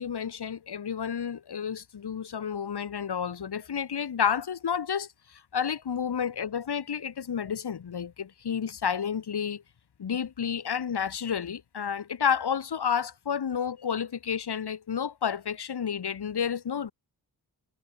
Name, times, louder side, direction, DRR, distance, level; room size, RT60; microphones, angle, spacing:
voice 1, 0.0-9.6 10.0-16.9, left 7 dB, 70° left, 2.5 m, -30 dB
cardioid pair, 65°, 41 cm